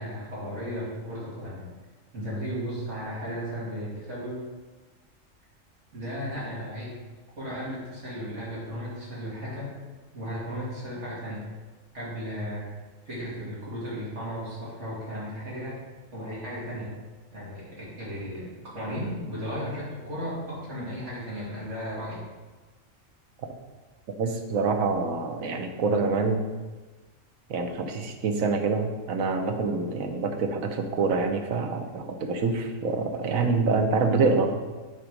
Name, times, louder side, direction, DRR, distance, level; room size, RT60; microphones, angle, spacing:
voice 1, 0.0-1.7 2.1-4.4 5.9-7.0 7.3-9.7 10.1-11.4 11.9-12.6 13.1-15.8 16.1-16.9 17.3-22.2, equal, 60° right, -8 dB, 3.1 m, -35 dB
voice 2, 24.2-26.4 27.5-34.5, right 4 dB, 85° right, 5 dB, 1.3 m, -26 dB
7.8 x 4.6 x 5.2 m, 1.3 s
omnidirectional pair, 1.4 m